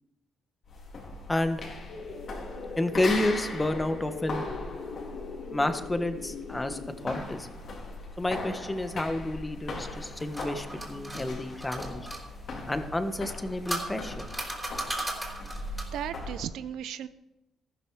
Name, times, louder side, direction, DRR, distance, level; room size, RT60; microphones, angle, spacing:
sound 1, 0.7-16.5, left 2 dB, 55° left, 3.9 m, -39 dB
voice 1, 1.3-1.6 2.8-4.4 5.5-7.5 8.2-12.1 12.7-14.2, left 1 dB, 15° left, 8 dB, 1.3 m, -30 dB
sound 2, 1.9-7.2, left 4 dB, 90° left, 2.5 m, -40 dB
sound 3, 9.9-12.2 13.2-16.0, right 1 dB, 5° right, 4.0 m, -36 dB
voice 2, 15.9-17.1, right 10 dB, 80° right, 14 dB, 0.5 m, -35 dB
14.0 x 12.5 x 4.8 m, 0.95 s
cardioid pair, 90°, 0 cm